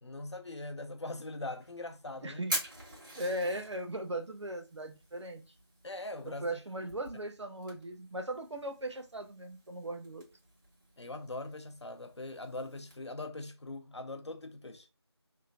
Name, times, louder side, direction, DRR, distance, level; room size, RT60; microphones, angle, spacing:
voice 1, 0.0-2.4 5.8-6.4 11.0-14.9, left 2 dB, 80° left, 0.6 m, -41 dB
Fire, 1.5-13.0, right 1 dB, 45° right, 1.3 m, -46 dB
voice 2, 2.2-2.6 3.1-5.4 6.2-10.2, right 1 dB, 85° right, 0.7 m, -38 dB
3.1 x 2.2 x 2.3 m
figure-of-eight pair, 175°, 14 cm